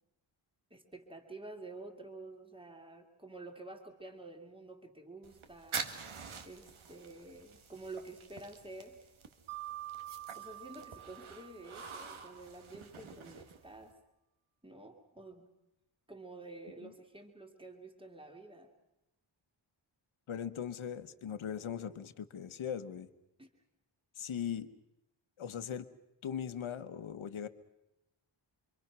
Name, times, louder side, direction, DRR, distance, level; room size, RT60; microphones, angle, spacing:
voice 1, 0.7-5.9 6.4-9.0 10.4-13.9 14.6-15.5 16.1-18.7 23.4-23.5, right 2 dB, 10° right, 3 dB, 2.6 m, -49 dB
sound 1, 5.2-13.9, right 5 dB, 80° right, 2.0 m, -47 dB
Mallet percussion, 9.5-12.2, right 15 dB, 55° right, 2.7 m, -47 dB
voice 2, 20.3-23.1 24.2-24.7 25.4-25.9 26.2-27.5, left 8 dB, 75° left, 9 dB, 1.2 m, -39 dB
26.5 x 25.5 x 6.0 m, 0.92 s
wide cardioid pair, 180°, 48 cm